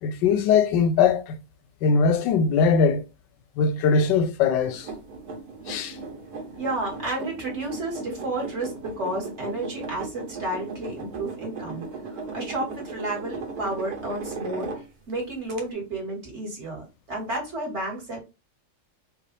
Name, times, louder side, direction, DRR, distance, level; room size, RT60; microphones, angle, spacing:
voice 1, 0.0-1.4 1.8-3.0 3.6-4.9 5.7-6.0, left 5 dB, 90° left, 1.3 m, -21 dB
sound 1, 4.6-15.1 15.5-15.6, right 3 dB, 65° right, 1.3 m, -37 dB
voice 2, 6.6-14.7 15.1-18.2, right 2 dB, 40° right, 1.9 m, -31 dB
5.0 x 2.4 x 3.3 m
omnidirectional pair, 1.9 m